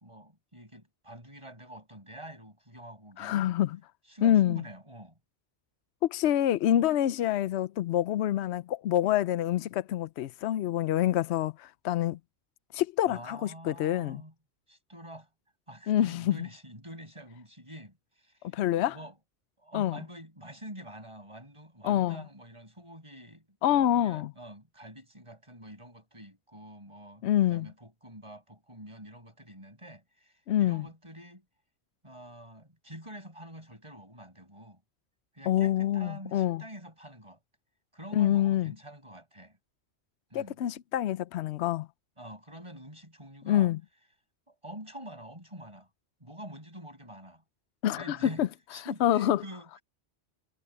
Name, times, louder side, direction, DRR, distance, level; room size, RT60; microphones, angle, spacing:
voice 1, 0.0-3.6 4.1-5.2 13.1-14.3 14.7-15.3 15.7-18.6 18.8-19.1 19.6-31.4 32.0-34.8 35.3-37.4 37.9-39.6 40.3-40.6 42.2-43.7 44.5-45.9 46.2-47.4 47.9-49.8, right 1 dB, 25° right, 7.1 m, -47 dB
voice 2, 3.2-3.8 4.2-4.6 6.1-12.2 12.7-14.2 15.9-16.5 18.5-18.9 19.7-20.0 21.8-22.2 23.6-24.3 27.2-27.7 30.5-30.8 35.5-36.6 38.1-38.7 40.3-41.9 43.5-43.8 47.8-48.5 49.0-49.4, left 12 dB, 80° left, 0.8 m, -26 dB
omnidirectional pair, 1.1 m